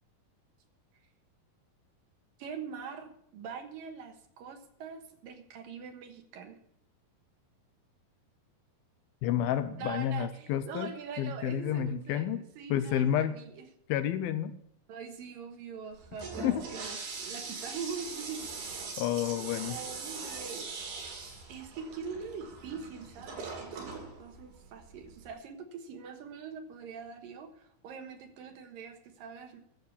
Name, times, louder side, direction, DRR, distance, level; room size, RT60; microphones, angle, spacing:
voice 1, 2.4-6.6 9.8-13.6 14.9-18.4 19.7-20.7 21.5-29.6, right 6 dB, 65° right, 5 dB, 2.9 m, -43 dB
voice 2, 9.2-10.9 11.2-12.4 12.7-13.4 13.9-14.5 16.4-16.6 19.0-19.8, left 10 dB, 80° left, 11 dB, 2.4 m, -30 dB
Toilet flush, 15.9-25.3, right 4 dB, 85° right, 5.0 m, -42 dB
12.0 x 7.7 x 8.5 m, 0.70 s
omnidirectional pair, 4.5 m